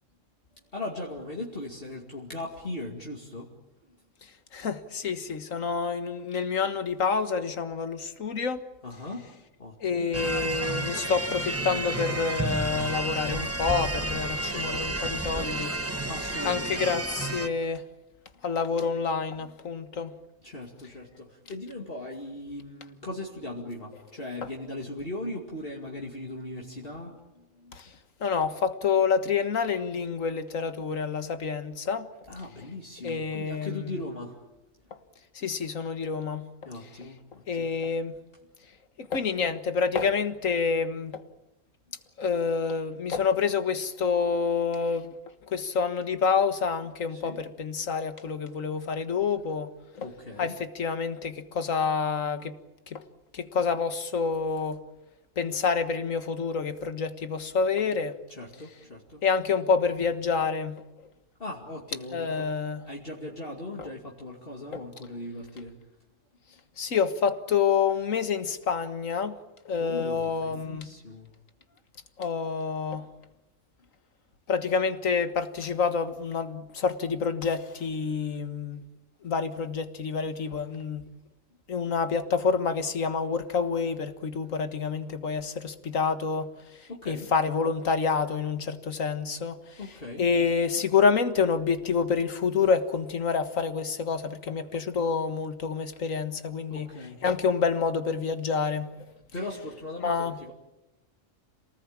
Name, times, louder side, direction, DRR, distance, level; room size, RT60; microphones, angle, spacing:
voice 1, 0.7-3.5 8.8-9.3 9.6-10.2 16.1-16.9 19.4-19.5 20.4-27.8 32.3-34.4 36.7-37.7 47.1-47.4 50.0-50.6 58.3-59.2 61.4-62.5 62.8-65.7 69.8-71.3 78.3-78.4 86.9-87.3 89.8-90.3 90.7-90.8 96.7-97.2 99.3-100.5, left 2 dB, 45° left, 2.7 m, -39 dB
voice 2, 4.5-8.6 9.8-15.8 16.5-17.8 18.4-20.1 27.7-27.9 28.2-32.1 33.0-33.9 35.4-36.5 37.5-38.1 39.0-41.2 42.2-45.1 45.5-49.7 50.0-50.1 50.4-52.6 52.9-53.0 53.3-54.8 55.4-58.1 59.2-60.8 62.1-62.9 63.8-63.9 64.7-64.8 66.8-69.4 69.7-70.9 72.2-73.1 74.5-78.8 79.2-81.0 81.7-86.6 87.1-89.8 90.2-96.9 97.2-98.9 100.0-100.4, left 5 dB, 80° left, 1.9 m, -28 dB
sound 1, 10.1-17.5, right 1 dB, 10° right, 1.1 m, -31 dB
27.5 x 19.0 x 8.7 m
omnidirectional pair, 1.3 m